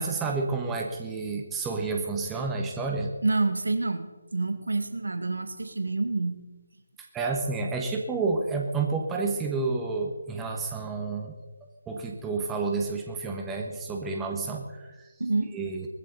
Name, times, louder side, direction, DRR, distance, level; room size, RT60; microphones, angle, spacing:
voice 1, 0.0-3.1 7.1-11.3 11.9-15.1 15.5-15.9, right 4 dB, 10° right, 2 dB, 1.4 m, -30 dB
voice 2, 3.2-6.4 15.2-15.5, right 3 dB, 75° right, 8 dB, 1.9 m, -28 dB
19.5 x 15.0 x 4.1 m, 1.2 s
figure-of-eight pair, 155°, 0 cm